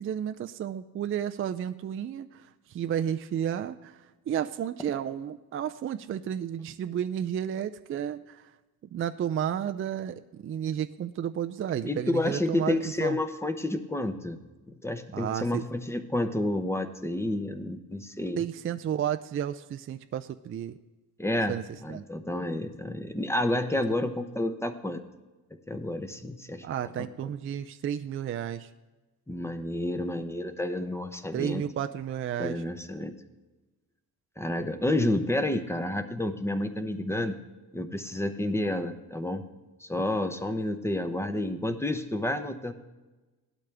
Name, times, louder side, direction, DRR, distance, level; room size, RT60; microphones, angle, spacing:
voice 1, 0.0-8.5 8.9-13.2 15.1-15.7 18.4-20.8 21.5-21.6 21.9-22.0 23.9-24.0 26.6-28.7 31.3-32.6, right 9 dB, 35° right, 9 dB, 0.4 m, -32 dB
voice 2, 11.8-14.4 14.7-18.4 21.2-21.5 21.8-25.0 25.7-26.6 27.0-27.1 29.3-31.6 32.4-33.1 34.4-37.4 37.7-39.4 39.8-42.7, left 1 dB, 5° left, 8 dB, 0.8 m, -30 dB
17.5 x 12.0 x 3.4 m, 1.2 s
cardioid pair, 120°, 36 cm